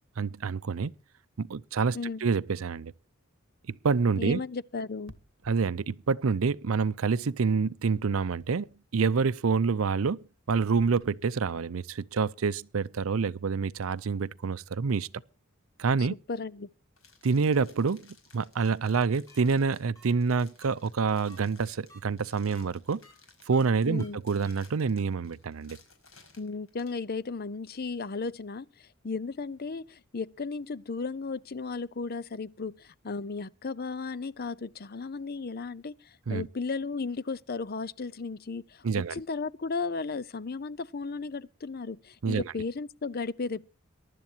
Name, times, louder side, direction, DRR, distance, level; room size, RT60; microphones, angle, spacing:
voice 1, 0.2-0.9 1.4-2.9 3.7-4.4 5.5-15.1 15.8-16.1 17.2-23.0 23.5-25.8 36.3-36.5 38.8-39.2 42.2-42.5, right 5 dB, 85° right, 0.5 m, -27 dB
voice 2, 1.9-2.3 4.2-5.1 16.3-16.7 23.9-24.2 26.4-38.8 39.1-43.7, left 4 dB, 50° left, 0.6 m, -35 dB
sound 1, 5.1-6.1 8.4-8.9 10.5-11.8, right 1 dB, 60° right, 1.6 m, -55 dB
sound 2, 17.0-27.0, left 5 dB, 85° left, 5.4 m, -58 dB
sound 3, 18.6-18.7 19.3-19.4 20.0-20.1 20.6-20.7 21.3-21.4 21.9-22.0 22.5-22.6 23.0-23.1 23.5-23.6 24.0-24.1 24.4-24.5, equal, 15° left, 6.9 m, -53 dB
23.0 x 11.5 x 2.9 m
head